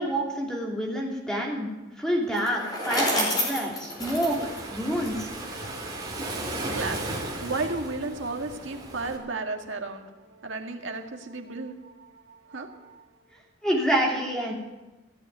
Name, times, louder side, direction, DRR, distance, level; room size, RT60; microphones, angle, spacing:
voice 1, 0.0-1.7 2.0-4.4 4.7-5.3 13.6-14.5, right 1 dB, 5° left, -1 dB, 3.0 m, -27 dB
Bicycle, 2.3-5.5, left 1 dB, 20° left, 5.0 m, -29 dB
Waves surf, 4.0-9.2, right 2 dB, 20° right, 3.0 m, -35 dB
voice 2, 6.4-13.1, right 3 dB, 70° right, 4 dB, 1.8 m, -34 dB
16.0 x 9.2 x 9.4 m, 1.1 s
head